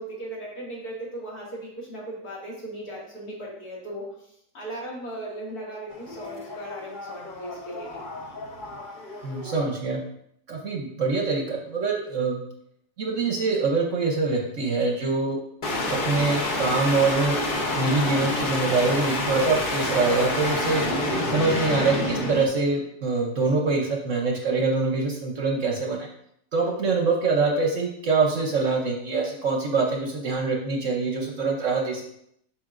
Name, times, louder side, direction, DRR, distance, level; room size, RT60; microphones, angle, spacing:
voice 1, 0.0-8.0, right 1 dB, 65° left, -5 dB, 2.6 m, -37 dB
sound 1, 5.9-9.6 15.6-22.5, left 2 dB, 40° left, 0.8 m, -28 dB
voice 2, 9.2-10.0 10.5-12.4 13.0-15.4 16.0-17.4 17.7-20.8 21.2-26.1 26.5-32.1, right 3 dB, 55° right, 1 dB, 1.0 m, -24 dB
7.6 x 5.8 x 2.5 m, 0.73 s
omnidirectional pair, 1.8 m